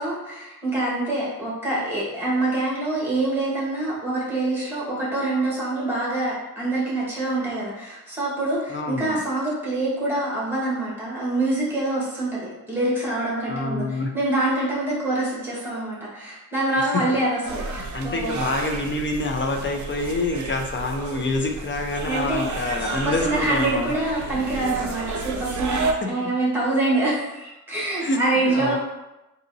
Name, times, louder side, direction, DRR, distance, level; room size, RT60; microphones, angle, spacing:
voice 1, 0.0-18.4 22.0-28.8, right 2 dB, 5° right, -7 dB, 1.4 m, -25 dB
voice 2, 8.7-9.2 13.5-14.1 16.8-17.0 17.7-23.9 24.7-24.9 26.2-26.3 28.0-28.2 28.5-28.8, left 2 dB, 35° left, 3 dB, 0.4 m, -27 dB
sound 1, 17.4-25.9, right 3 dB, 55° right, 0.5 m, -32 dB
3.9 x 2.7 x 2.6 m, 0.96 s
wide cardioid pair, 135°, 35 cm